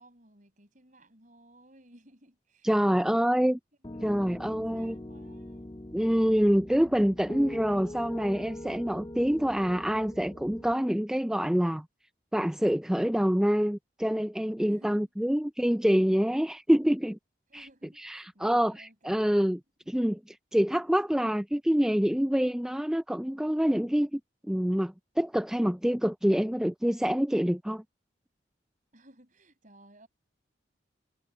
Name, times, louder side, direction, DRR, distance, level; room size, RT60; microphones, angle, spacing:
voice 1, 0.0-3.5 3.8-5.7 14.6-15.3 17.5-19.3 28.9-30.1, right 1 dB, 45° right, 6.4 m, -57 dB
voice 2, 2.6-3.6 4.0-5.0 5.9-11.8 12.3-17.2 17.5-17.7 18.0-19.6 19.9-27.8, equal, 5° right, 0.4 m, -26 dB
Piano, 3.8-10.7, left 1 dB, 20° left, 0.7 m, -42 dB
head